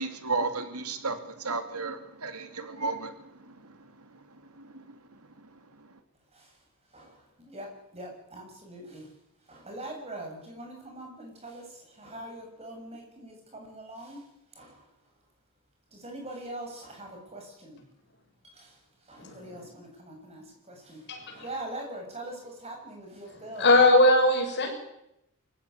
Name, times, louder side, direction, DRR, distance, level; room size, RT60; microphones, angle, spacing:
voice 1, 0.0-3.7 4.6-5.0, right 3 dB, 85° right, 8 dB, 2.7 m, -34 dB
voice 2, 7.4-9.0 9.5-11.6 12.0-14.2 14.6-14.8 15.9-17.8 18.6-18.7 19.1-21.0 21.3-23.7, right 1 dB, 30° right, 2 dB, 7.5 m, -42 dB
voice 3, 19.2-19.7 21.1-21.3 23.5-24.7, left 1 dB, 50° left, 2 dB, 6.4 m, -21 dB
24.5 x 15.0 x 9.8 m, 0.82 s
head